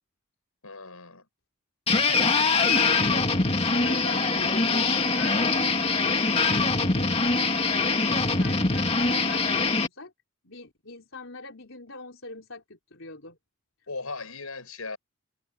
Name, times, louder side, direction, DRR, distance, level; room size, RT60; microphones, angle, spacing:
voice 1, 0.6-1.3 13.9-15.0, left 3 dB, 90° left, 6.6 m, -37 dB
sound 1, 1.9-9.9, left 3 dB, 30° left, 2.3 m, -23 dB
voice 2, 2.3-5.7 6.0-10.1 10.4-13.4, left 3 dB, 65° left, 4.2 m, -43 dB
head